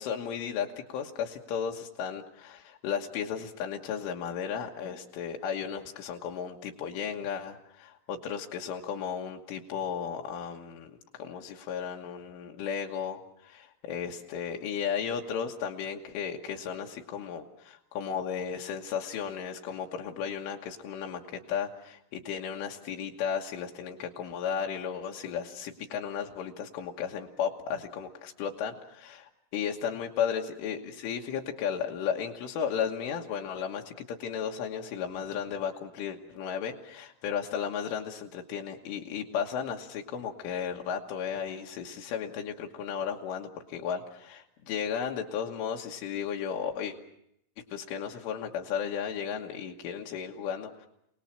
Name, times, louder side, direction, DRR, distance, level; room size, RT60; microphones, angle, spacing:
voice 1, 0.0-47.0 47.7-50.9, left 7 dB, 75° left, 1 dB, 3.7 m, -34 dB
29.0 x 19.0 x 7.3 m, 0.78 s
omnidirectional pair, 6.0 m